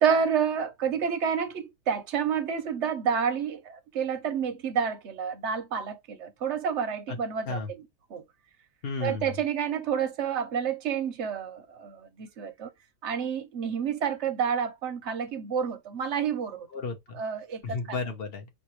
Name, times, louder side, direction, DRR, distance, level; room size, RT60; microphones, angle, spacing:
voice 1, 0.0-7.6 8.1-8.2 9.0-12.7 13.0-16.7 17.2-17.6, right 7 dB, 55° right, 0.9 m, -29 dB
voice 2, 8.8-9.4 16.7-17.2 17.6-18.5, left 4 dB, 40° left, 1.1 m, -33 dB
5.2 x 2.6 x 3.1 m
omnidirectional pair, 1.7 m